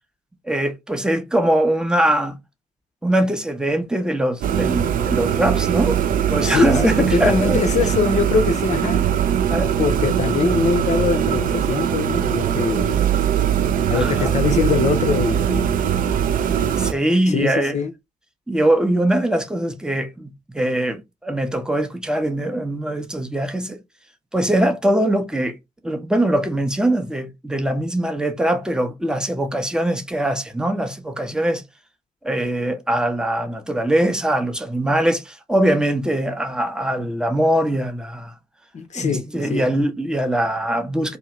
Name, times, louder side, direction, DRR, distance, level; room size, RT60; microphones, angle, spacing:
voice 1, 0.4-2.4 3.0-6.0 6.3-7.6 9.5-9.7 13.9-14.4 16.7-17.8 18.5-23.8 24.3-25.6 25.8-31.6 32.2-38.3 39.0-41.2, right 1 dB, 5° right, 0.6 m, -22 dB
sound 1, 4.4-16.9, right 9 dB, 45° right, 0.4 m, -21 dB
voice 2, 6.4-9.1 9.8-13.0 13.9-15.8 17.3-17.9 38.7-39.6, left 5 dB, 35° left, 0.6 m, -22 dB
2.6 x 2.3 x 3.1 m
figure-of-eight pair, 40°, 20 cm